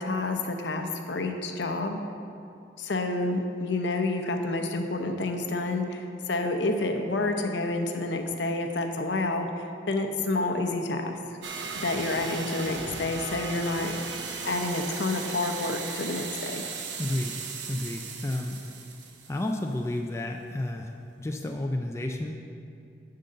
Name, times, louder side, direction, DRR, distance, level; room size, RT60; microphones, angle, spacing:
voice 1, 0.0-2.0 2.8-11.2 11.8-14.0 14.4-16.6, left 2 dB, 70° left, 5 dB, 0.7 m, -29 dB
sound 1, 11.4-19.7, right 4 dB, 75° right, 0.8 m, -37 dB
voice 2, 17.0-18.6 19.3-22.3, left 1 dB, 15° left, 2 dB, 0.3 m, -31 dB
10.0 x 3.8 x 6.6 m, 2.6 s
head